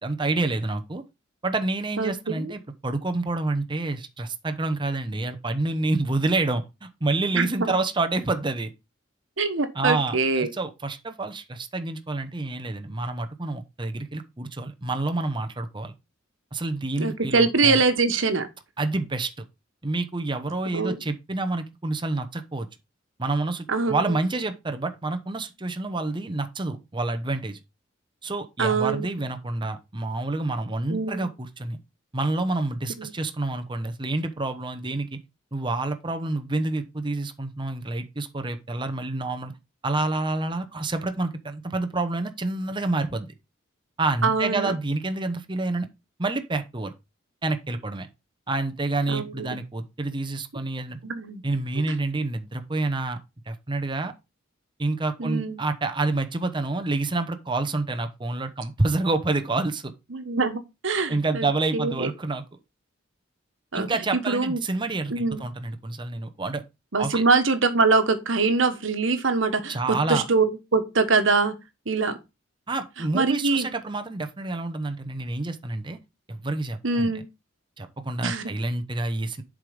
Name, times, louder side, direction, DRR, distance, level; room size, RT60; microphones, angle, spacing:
voice 1, 0.0-1.0 1.4-8.7 9.7-15.9 16.5-17.8 18.8-19.4 19.8-22.7 23.2-27.6 28.2-31.8 32.1-35.2 35.5-39.5 39.8-43.3 44.0-45.9 46.2-46.9 47.4-48.1 48.5-51.0 51.4-53.2 53.5-54.1 54.8-59.9 61.1-62.4 63.7-66.6 67.0-67.2 69.7-70.2 72.7-76.0 76.3-77.1 77.8-79.4, right 2 dB, 25° right, 0.9 m, -28 dB
voice 2, 2.0-2.5 7.3-7.7 9.4-10.5 17.0-18.5 20.7-21.0 23.7-24.0 28.6-29.1 30.9-31.3 33.0-33.1 44.2-44.7 49.1-49.5 51.0-51.4 55.2-55.6 60.1-61.5 61.7-62.1 63.7-63.9 64.3-64.6 65.1-65.4 66.9-71.6 71.9-72.2 73.1-73.7 76.8-77.2 78.2-78.5, right 4 dB, 75° right, 1.3 m, -23 dB
7.5 x 4.9 x 5.0 m
head